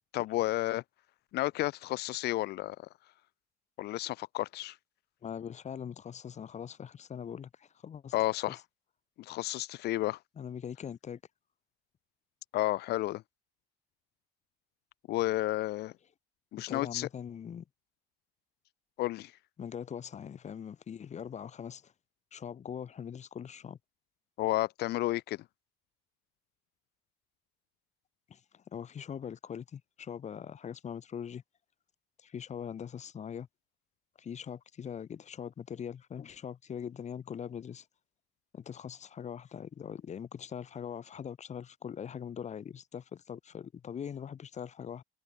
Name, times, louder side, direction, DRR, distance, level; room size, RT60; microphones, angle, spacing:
voice 1, 0.1-0.8 1.3-2.8 3.8-4.8 8.1-8.6 9.2-10.2 12.5-13.2 15.1-15.9 16.5-17.1 19.0-19.3 24.4-25.4, left 17 dB, 75° left, 0.9 m, -31 dB
voice 2, 5.2-8.1 8.5-8.6 10.4-11.2 16.7-17.6 19.6-21.9 22.3-23.8 28.3-31.4 32.2-33.5 34.2-37.9 38.5-45.0, left 8 dB, 45° left, 2.6 m, -42 dB
cardioid pair, 110°, 17 cm